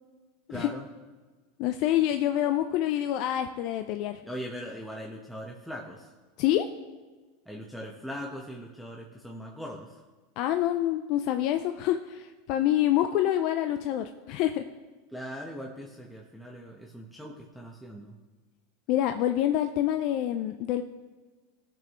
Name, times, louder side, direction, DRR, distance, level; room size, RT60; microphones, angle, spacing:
voice 1, 0.5-0.9 4.2-6.1 7.5-9.9 15.1-18.2, equal, ahead, -2 dB, 1.1 m, -40 dB
voice 2, 1.6-4.2 6.4-6.7 10.4-14.6 18.9-20.8, left 12 dB, 55° left, 8 dB, 0.5 m, -26 dB
17.0 x 6.1 x 3.1 m, 1.3 s
hypercardioid pair, 100°, 0 cm